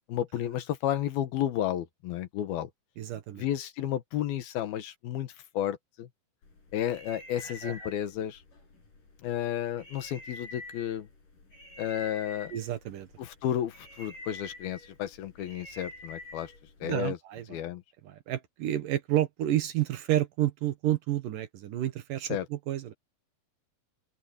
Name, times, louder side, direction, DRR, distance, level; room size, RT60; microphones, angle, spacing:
voice 1, 0.1-2.7 3.4-6.1 6.7-8.4 9.2-11.1 11.8-12.5 13.2-16.5 16.8-17.2 17.5-17.8 22.3-22.5, left 11 dB, 80° left, 3.2 m, -32 dB
voice 2, 3.0-3.5 7.6-7.8 12.5-13.1 16.8-17.6 18.0-22.9, right 13 dB, 70° right, 2.7 m, -30 dB
sound 1, 6.4-17.0, left 2 dB, 60° left, 9.1 m, -48 dB
open air
omnidirectional pair, 4.3 m